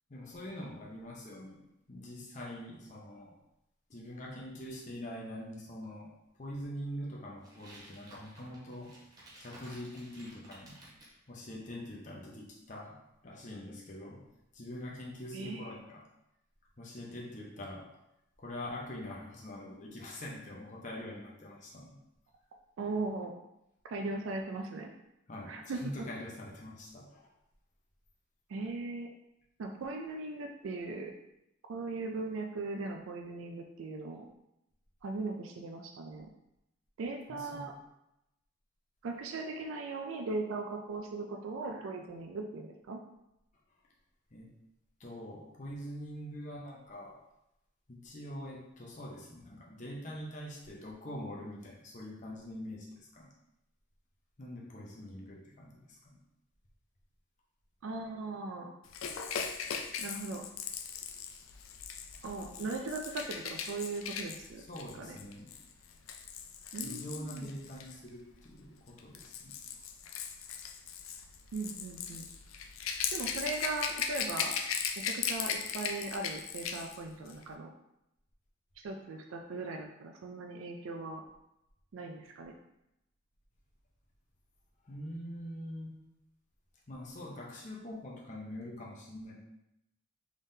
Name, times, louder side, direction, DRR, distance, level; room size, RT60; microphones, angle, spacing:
voice 1, 0.1-1.6 1.9-3.3 3.9-6.1 6.4-8.9 9.4-10.8 11.3-13.0 13.2-14.2 14.5-16.0 16.8-17.9 18.4-22.0 25.3-27.3 37.3-37.7 44.3-44.5 45.0-47.2 47.9-53.3 54.4-56.2 64.6-65.5 66.8-69.6 84.8-86.1 86.9-89.3, left 1 dB, 35° left, -3 dB, 0.7 m, -44 dB
sound 1, 7.4-11.2, right 1 dB, 20° right, 0.7 m, -55 dB
voice 2, 15.3-15.8 22.8-23.3 23.8-24.9 25.5-26.0 28.5-29.1 29.6-31.1 31.7-34.3 35.0-36.3 37.0-37.7 39.0-43.0 57.8-58.7 60.0-60.4 62.2-64.6 65.0-65.2 66.7-67.5 71.5-72.3 73.1-74.5 75.0-77.7 78.8-81.2 81.9-82.6, right 3 dB, 85° right, 3 dB, 0.4 m, -39 dB
Rattle / Rattle (instrument), 58.9-67.9 68.9-77.0 77.3-77.4, left 7 dB, 90° left, 0.4 m, -38 dB
3.6 x 3.5 x 2.7 m, 0.87 s
head